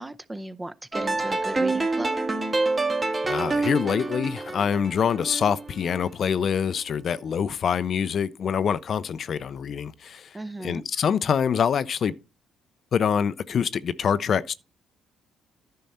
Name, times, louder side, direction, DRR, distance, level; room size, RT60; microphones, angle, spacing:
voice 1, 0.0-2.2 10.3-10.8, right 1 dB, 15° right, 0.6 m, -36 dB
sound 1, 0.9-6.0, right 3 dB, 35° right, 1.7 m, -27 dB
voice 2, 3.3-12.1 12.9-14.6, left 7 dB, 55° left, 0.5 m, -25 dB
10.5 x 5.4 x 4.2 m
supercardioid pair, 65°, 0 cm